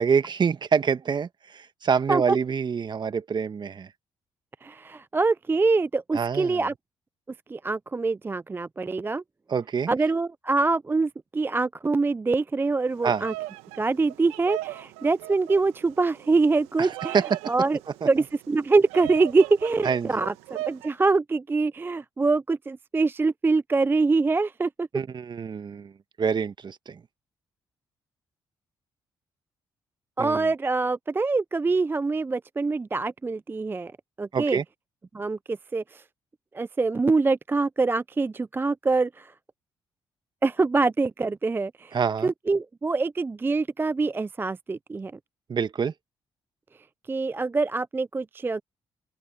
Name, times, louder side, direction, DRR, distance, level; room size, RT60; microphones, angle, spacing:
voice 1, 0.0-3.9 6.1-6.6 9.5-9.9 13.0-13.2 16.8-17.5 18.0-18.1 19.8-20.2 24.9-25.9 26.2-27.0 30.2-30.5 34.3-34.6 41.9-42.3 45.5-45.9, right 6 dB, 45° right, 1.5 m, -26 dB
voice 2, 4.6-6.7 7.5-9.2 9.9-13.3 13.8-17.2 17.5-17.8 18.0-20.3 20.7-24.9 30.2-33.9 34.2-34.6 35.1-36.0 36.5-39.3 40.4-42.0 42.2-45.1 47.1-48.6, right 3 dB, 20° right, 0.3 m, -24 dB
Bird vocalization bird call bird song, 12.9-20.9, right 17 dB, 90° right, 1.2 m, -38 dB
open air
supercardioid pair, 55°, 10 cm